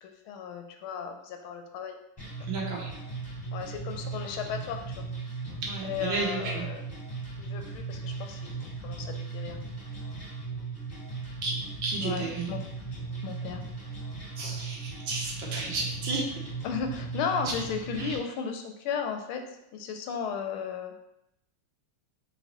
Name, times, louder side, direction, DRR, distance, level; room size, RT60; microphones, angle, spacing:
voice 1, 0.0-2.0 3.5-5.0 5.8-6.8 7.4-9.6 12.0-12.6 13.2-13.6 16.6-19.4 19.7-20.9, left 6 dB, 80° left, 5 dB, 1.4 m, -35 dB
sound 1, 2.2-18.2, right 4 dB, 15° left, 1.3 m, -37 dB
voice 2, 2.5-2.9 5.6-6.7 11.4-11.5 11.8-12.5 14.4-16.3 18.0-18.2, right 3 dB, 70° right, -2 dB, 1.7 m, -32 dB
4.0 x 3.9 x 2.9 m, 0.81 s
omnidirectional pair, 2.3 m